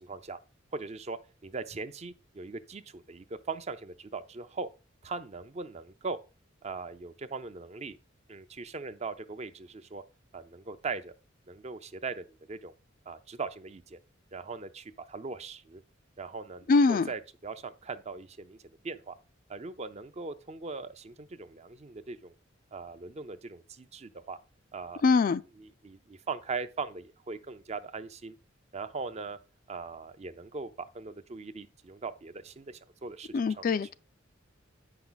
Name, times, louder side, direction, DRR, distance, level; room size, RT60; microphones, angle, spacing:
voice 1, 0.0-0.4 0.7-1.2 1.4-4.7 5.0-6.2 6.6-8.0 8.3-10.0 10.3-11.1 11.5-12.7 13.1-14.0 14.3-15.8 16.2-18.6 18.8-19.1 19.5-22.3 22.7-24.4 24.7-25.1 25.6-28.4 28.7-29.4 29.7-30.7 30.9-33.9, right 4 dB, 35° right, 0.6 m, -40 dB
voice 2, 16.7-17.1 25.0-25.4 33.3-33.9, left 4 dB, 45° left, 0.3 m, -23 dB
8.6 x 5.8 x 3.9 m
head